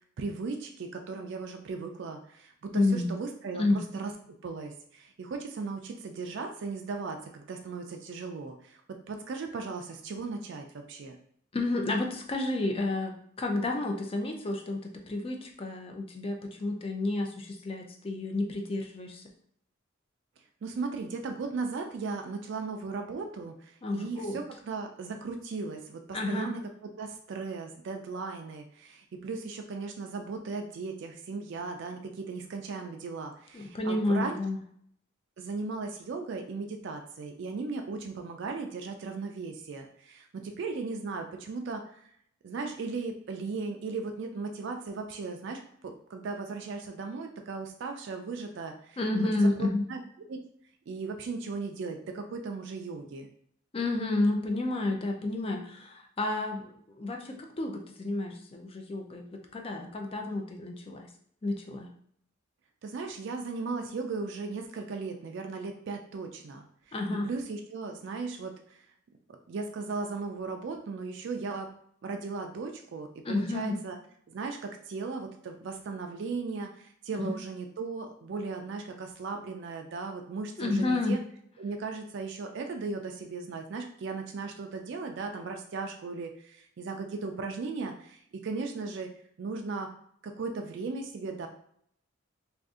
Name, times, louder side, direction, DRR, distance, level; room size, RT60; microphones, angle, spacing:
voice 1, 0.2-4.1 4.4-8.8 9.1-11.2 20.6-26.6 27.0-34.4 35.4-42.0 42.4-49.0 49.6-50.0 50.3-50.4 50.9-53.3 62.8-66.6 67.2-68.8 69.3-71.7 72.0-74.0 74.3-81.2 81.6-89.1 89.4-89.9 90.2-91.5, right 4 dB, 60° right, 4 dB, 0.4 m, -37 dB
voice 2, 2.7-3.2 3.6-3.8 11.5-19.2 23.8-24.4 26.1-26.5 33.5-34.6 49.0-49.8 53.7-61.1 61.4-61.9 66.9-67.3 73.2-73.8 77.1-77.4 80.6-81.2, left 2 dB, 30° left, 2 dB, 0.4 m, -30 dB
2.5 x 2.4 x 3.5 m, 0.65 s
head